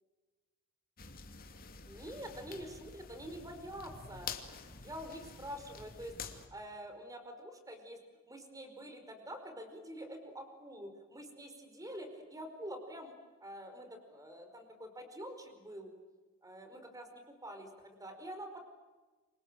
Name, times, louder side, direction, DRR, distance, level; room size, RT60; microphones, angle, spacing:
sound 1, 1.0-6.5, left 5 dB, 45° left, 2.6 m, -48 dB
voice 1, 1.8-4.3 4.8-15.9 16.4-18.6, equal, 15° right, 6 dB, 5.0 m, -47 dB
29.0 x 26.5 x 7.7 m, 1.3 s
head